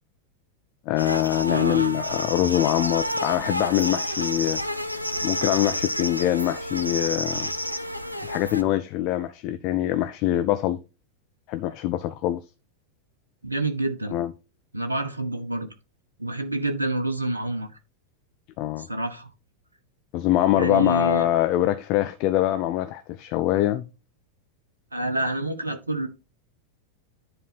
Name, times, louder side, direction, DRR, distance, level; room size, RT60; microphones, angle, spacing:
voice 1, 0.9-4.6 5.2-7.5 8.2-10.8 11.5-12.4 14.1-14.3 18.6-18.9 20.1-23.9, left 13 dB, 40° left, 0.6 m, -24 dB
sound 1, 1.0-8.6, equal, 90° left, 0.8 m, -30 dB
voice 2, 1.5-2.0 13.4-14.2 14.7-15.7 16.2-17.7 18.8-19.3 20.5-21.3 24.9-26.1, right 1 dB, 80° right, 0.9 m, -28 dB
10.0 x 4.2 x 4.1 m
figure-of-eight pair, 90°, 0 cm